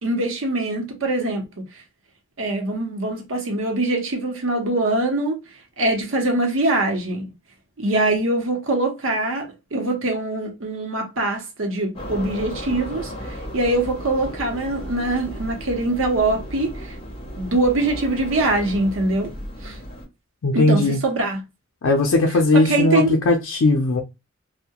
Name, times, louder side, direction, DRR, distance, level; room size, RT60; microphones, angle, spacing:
voice 1, 0.0-1.6 2.4-5.4 5.8-7.3 7.8-13.1 13.5-16.9 17.4-19.3 19.6-19.8 20.5-21.4 22.6-23.2, right 2 dB, 75° right, 0.8 m, -23 dB
sound 1, 11.9-20.0, equal, 30° left, 0.7 m, -35 dB
voice 2, 20.4-21.0 21.8-24.0, left 2 dB, 75° left, 0.4 m, -18 dB
2.3 x 2.1 x 2.8 m
head